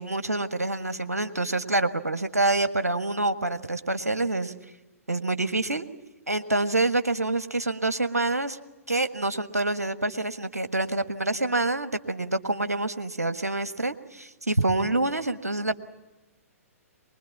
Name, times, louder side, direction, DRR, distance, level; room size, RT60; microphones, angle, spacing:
voice 1, 0.0-4.5 5.1-5.8 6.3-8.6 8.9-15.8, right 2 dB, 85° right, 10 dB, 1.4 m, -26 dB
23.5 x 21.0 x 7.2 m, 1.1 s
figure-of-eight pair, 115°, 8 cm